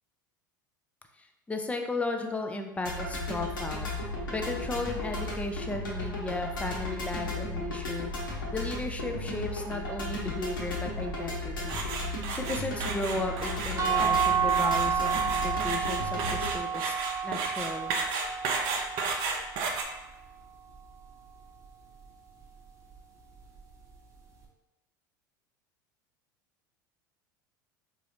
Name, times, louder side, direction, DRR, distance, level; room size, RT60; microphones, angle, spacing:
voice 1, 1.2-8.1 8.5-11.8 12.3-17.0 17.2-17.9, left 2 dB, 10° left, 4 dB, 0.4 m, -35 dB
sound 1, 2.9-16.6, left 2 dB, 80° left, 1.0 m, -35 dB
sound 2, 11.7-19.8, right 4 dB, 50° right, 0.5 m, -33 dB
sound 3, 13.8-19.6, right 8 dB, 25° right, 0.8 m, -30 dB
3.9 x 2.4 x 2.9 m, 1.0 s
figure-of-eight pair, 75°, 11 cm